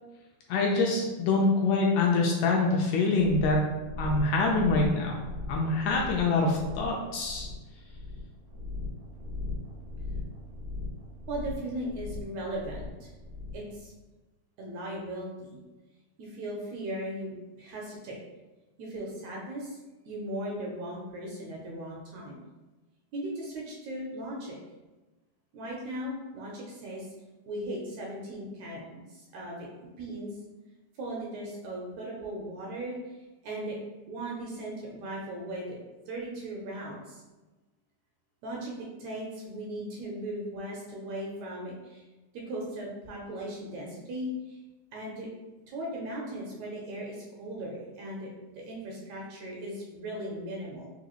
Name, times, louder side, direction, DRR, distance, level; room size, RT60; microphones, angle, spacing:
voice 1, 0.5-3.7 4.0-5.2 5.5-7.5, left 3 dB, 80° left, -1 dB, 1.8 m, -25 dB
sound 1, 3.2-13.7, left 3 dB, 60° right, 1.1 m, -39 dB
voice 2, 11.3-13.1 13.5-13.9 14.6-15.6 16.2-18.2 18.8-19.8 20.1-22.4 23.1-24.6 25.5-27.1 27.5-28.8 29.1-29.7 30.0-30.3 31.0-33.0 33.4-33.8 34.1-35.8 36.1-37.2 38.4-42.0 42.3-44.6 44.9-45.3 45.7-48.3 48.7-50.9, right 1 dB, 75° right, -2 dB, 1.7 m, -37 dB
4.7 x 2.6 x 2.9 m, 1.1 s
omnidirectional pair, 3.6 m